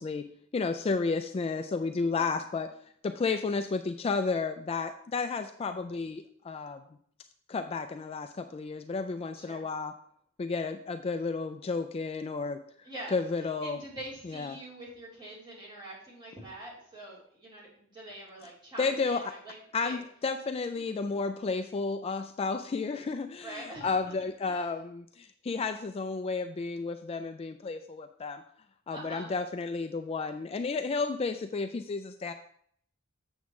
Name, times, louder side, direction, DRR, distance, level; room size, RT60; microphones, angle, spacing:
voice 1, 0.0-2.7 3.0-6.8 7.5-9.9 10.4-12.6 13.1-13.8 14.3-14.6 18.8-19.3 19.7-28.4 28.9-32.3, left 4 dB, 30° left, 7 dB, 0.3 m, -32 dB
voice 2, 2.0-2.3 9.3-9.6 12.8-13.2 13.6-19.6 19.8-20.0 20.7-20.9 23.4-24.1 24.5-24.7 28.9-29.3, right 1 dB, 25° right, -7 dB, 3.4 m, -45 dB
8.1 x 7.1 x 3.1 m, 0.64 s
head